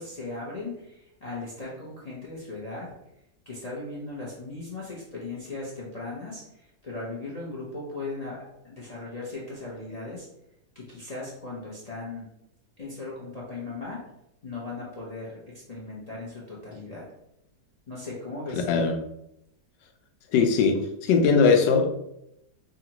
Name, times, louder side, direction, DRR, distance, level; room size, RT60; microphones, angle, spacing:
voice 1, 0.0-2.9 3.5-10.3 10.7-12.3 12.8-14.0 14.4-17.1 17.9-18.8, left 3 dB, 50° left, -5 dB, 0.4 m, -38 dB
voice 2, 18.5-18.9 20.3-21.9, left 5 dB, 80° left, 4 dB, 1.3 m, -20 dB
5.0 x 2.4 x 2.9 m, 0.80 s
omnidirectional pair, 1.9 m